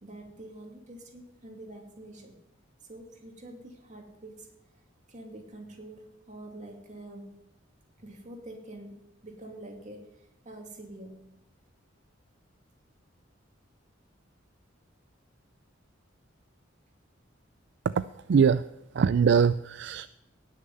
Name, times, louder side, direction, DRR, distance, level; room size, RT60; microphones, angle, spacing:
voice 1, 0.0-2.4 2.9-4.5 5.1-7.4 8.0-10.1 10.4-11.4, right 1 dB, 40° right, 1 dB, 2.6 m, -46 dB
voice 2, 17.8-18.7 18.9-20.1, right 6 dB, 65° right, 13 dB, 0.4 m, -23 dB
18.5 x 6.7 x 5.5 m, 0.90 s
head